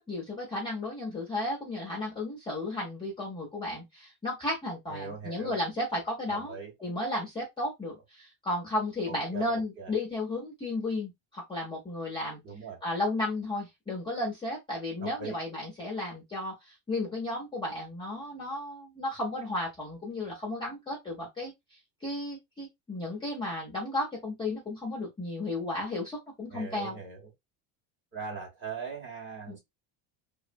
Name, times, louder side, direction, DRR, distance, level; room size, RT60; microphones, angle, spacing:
voice 1, 0.1-12.4 12.8-27.0 29.5-29.6, left 2 dB, 10° left, 0.4 m, -34 dB
voice 2, 4.9-5.6 6.3-6.7 9.1-9.9 12.4-12.8 15.0-15.4 26.5-27.3 28.1-29.6, right 5 dB, 25° right, 0.7 m, -40 dB
2.8 x 2.0 x 2.5 m
cardioid pair, 170°, 48 cm